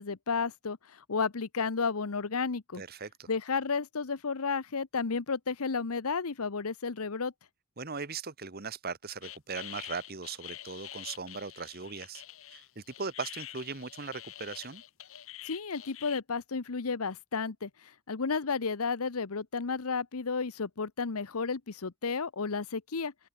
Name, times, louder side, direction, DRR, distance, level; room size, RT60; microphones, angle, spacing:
voice 1, 0.0-2.8 3.3-7.3 15.5-23.1, left 5 dB, 80° left, 0.9 m, -32 dB
voice 2, 2.8-3.3 7.8-12.2 12.5-14.8, right 5 dB, 45° right, 1.3 m, -39 dB
sound 1, 9.2-16.2, left 13 dB, 65° left, 1.3 m, -46 dB
open air
head